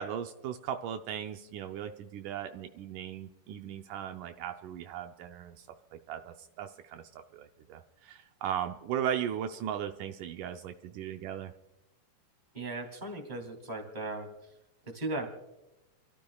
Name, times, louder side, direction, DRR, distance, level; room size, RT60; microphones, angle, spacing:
voice 1, 0.0-5.7 5.9-7.0 7.3-11.5, right 9 dB, 80° right, 5 dB, 2.2 m, -37 dB
voice 2, 12.5-14.5 14.8-15.3, right 2 dB, 15° right, 3 dB, 2.7 m, -37 dB
30.0 x 13.5 x 2.3 m, 1.0 s
omnidirectional pair, 3.7 m